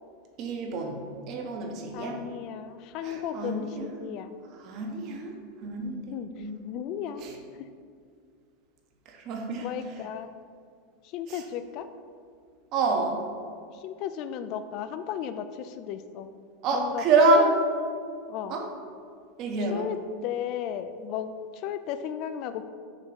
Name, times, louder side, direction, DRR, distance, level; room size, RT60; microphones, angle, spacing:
voice 1, 0.4-1.0 1.3-2.2 3.0-3.9 4.6-5.3 5.6-6.5 7.2-7.3 9.3-9.6 12.7-13.2 16.6-17.5 18.5-18.6 19.4-19.9, right 3 dB, 45° right, 2 dB, 1.1 m, -26 dB
voice 2, 1.9-4.4 6.1-7.7 9.6-10.3 11.0-11.9 13.7-16.3 16.7-17.0 17.3-17.6 18.3-18.6 19.6-20.0 20.2-22.7, left 9 dB, 45° left, 11 dB, 0.4 m, -35 dB
6.5 x 3.7 x 6.2 m, 2.2 s
supercardioid pair, 145°, 0 cm